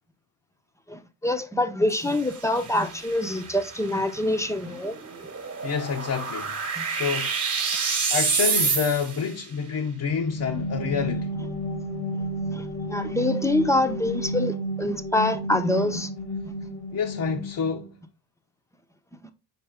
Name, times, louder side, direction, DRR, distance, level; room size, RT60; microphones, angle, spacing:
voice 1, 0.9-4.9 6.8-6.9 12.5-12.6 12.9-16.1, left 1 dB, 5° left, 0.8 m, -25 dB
sound 1, 1.9-9.3, right 5 dB, 30° right, 1.4 m, -29 dB
voice 2, 5.6-6.6 6.9-7.3 8.1-11.3 16.9-17.9, left 6 dB, 40° left, 0.9 m, -28 dB
sound 2, 10.1-17.9, equal, 65° left, 1.4 m, -31 dB
5.9 x 4.6 x 3.5 m
hypercardioid pair, 60°, 49 cm